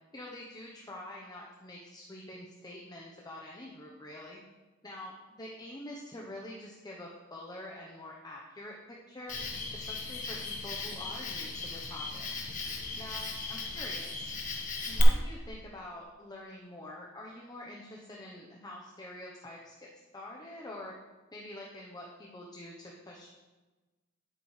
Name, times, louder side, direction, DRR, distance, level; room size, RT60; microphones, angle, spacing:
voice 1, 0.1-4.4 4.8-5.1 5.4-9.4 9.7-12.3 13.0-14.3 14.9-19.9 20.1-20.9 21.3-23.3, left 1 dB, 20° left, -2 dB, 0.9 m, -46 dB
Cricket, 9.3-15.0, left 3 dB, 40° left, 1.2 m, -37 dB
10.0 x 8.5 x 3.2 m, 1.2 s
head